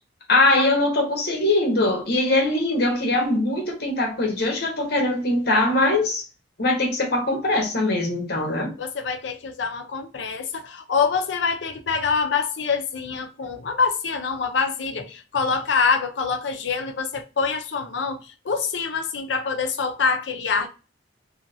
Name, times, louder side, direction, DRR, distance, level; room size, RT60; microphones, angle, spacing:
voice 1, 0.3-6.2 6.6-8.7, left 2 dB, 60° left, 1.1 m, -21 dB
voice 2, 8.8-20.7, left 5 dB, 75° left, 0.6 m, -25 dB
2.8 x 2.8 x 2.6 m
head